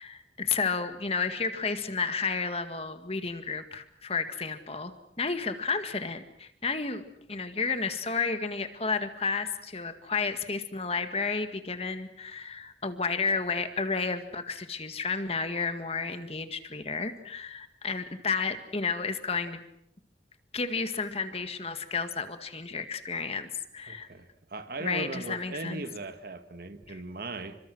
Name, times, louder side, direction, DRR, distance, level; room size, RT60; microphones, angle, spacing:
voice 1, 0.0-7.0 7.3-19.6 20.5-23.5 23.7-24.1 24.8-25.8 26.9-27.0, left 4 dB, 35° left, 9 dB, 1.9 m, -32 dB
voice 2, 23.9-27.6, right 2 dB, 55° right, 9 dB, 1.7 m, -38 dB
29.5 x 25.5 x 6.3 m, 0.71 s
head